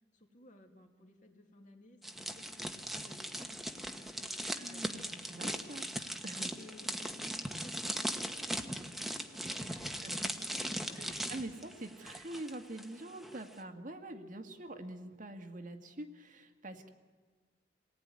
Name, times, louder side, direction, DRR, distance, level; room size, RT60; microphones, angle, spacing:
voice 1, 0.1-5.1 5.8-6.0 6.6-11.5, left 1 dB, 45° left, 3 dB, 2.9 m, -58 dB
sound 1, 2.0-12.8 13.1-13.4, equal, ahead, 1.3 m, -39 dB
voice 2, 4.4-5.9 6.2-6.5 9.7-10.2 11.0-16.9, right 1 dB, 45° right, 5 dB, 1.9 m, -45 dB
27.5 x 19.0 x 9.8 m, 1.4 s
head